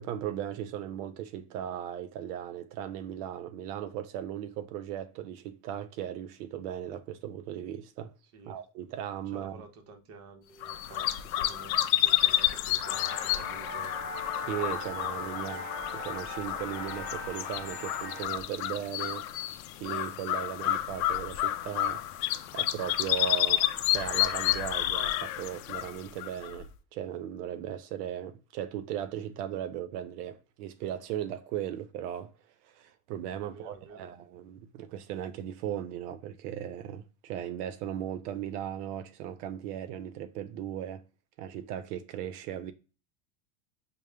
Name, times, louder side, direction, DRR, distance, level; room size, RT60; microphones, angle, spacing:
voice 1, 0.0-8.1 8.5-9.6 14.4-19.3 19.8-22.0 22.5-32.3 32.6-41.0 41.4-42.7, right 10 dB, 75° right, 0.6 m, -37 dB
voice 2, 8.2-8.6 9.2-14.0 23.4-23.7 33.4-34.1, right 3 dB, 35° right, 0.7 m, -51 dB
sound 1, 10.6-26.7, left 14 dB, 65° left, 0.5 m, -30 dB
sound 2, 12.8-18.3, left 3 dB, 20° left, 1.0 m, -39 dB
5.0 x 2.1 x 3.2 m
supercardioid pair, 160°, 46 cm